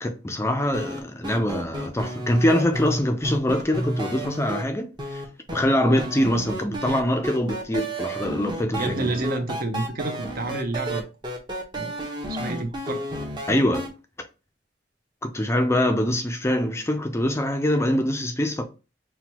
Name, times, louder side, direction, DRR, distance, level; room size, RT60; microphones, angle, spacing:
voice 1, 0.0-5.2 5.5-9.1 13.5-13.9 15.2-18.6, left 1 dB, 15° left, 0.4 m, -24 dB
sound 1, 0.7-4.6 5.0-5.6 6.0-13.9, right 1 dB, 25° right, 0.8 m, -31 dB
voice 2, 8.7-11.1 11.8-11.9 12.3-13.0, right 2 dB, 50° right, 0.7 m, -29 dB
5.9 x 2.2 x 2.9 m
head